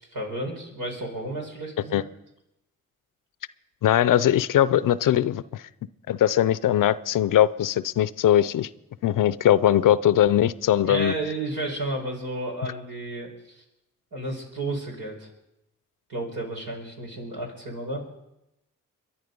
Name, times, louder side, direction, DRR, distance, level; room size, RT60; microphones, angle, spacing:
voice 1, 0.1-2.0 10.9-13.6 14.1-15.3 16.1-18.0, right 2 dB, 80° right, 0 dB, 4.7 m, -32 dB
voice 2, 3.8-5.6 6.1-8.7 9.0-11.1, left 11 dB, 75° left, 17 dB, 0.6 m, -20 dB
23.0 x 10.5 x 5.3 m, 0.88 s
supercardioid pair, 40°, 32 cm